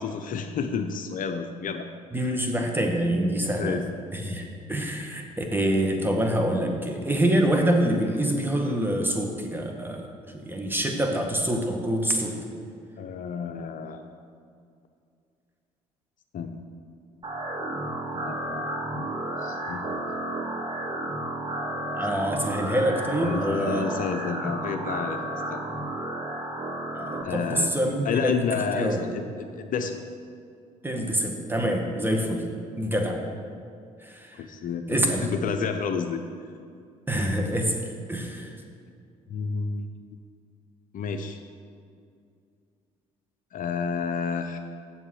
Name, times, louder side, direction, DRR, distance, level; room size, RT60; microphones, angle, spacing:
voice 1, 0.0-1.9 3.6-3.8 13.0-14.0 16.3-16.6 18.1-19.1 19.4-19.8 23.2-25.2 25.5-25.6 27.2-27.7 28.0-30.1 34.3-36.2 39.3-39.9 40.9-41.4 43.5-44.6, left 6 dB, 55° left, 6 dB, 0.7 m, -30 dB
voice 2, 2.1-3.8 4.1-10.1 10.3-12.3 21.9-23.9 26.9-28.4 28.7-29.0 30.8-32.4 32.8-33.2 34.0-34.4 34.9-35.3 37.1-37.7 38.1-38.5, right 1 dB, 10° right, 2 dB, 1.8 m, -26 dB
sound 1, 17.2-27.2, right 1 dB, 30° right, 1.5 m, -32 dB
7.7 x 7.3 x 6.5 m, 2.4 s
hypercardioid pair, 55°, 17 cm